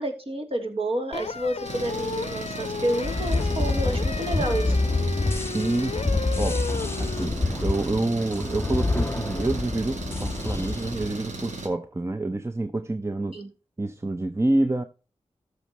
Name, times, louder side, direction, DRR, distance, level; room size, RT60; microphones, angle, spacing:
voice 1, 0.0-4.8 13.3-13.5, right 1 dB, 50° right, 3.0 m, -29 dB
sound 1, 1.1-7.3, left 5 dB, 60° left, 0.6 m, -34 dB
Engine, 1.7-11.7, right 2 dB, 80° right, 2.1 m, -36 dB
sound 2, 3.0-11.1, left 2 dB, 20° left, 0.6 m, -27 dB
voice 2, 5.5-6.6 7.0-13.4 13.8-14.8, right 2 dB, 20° right, 0.8 m, -28 dB
14.0 x 6.6 x 3.1 m
cardioid pair, 55°, 12 cm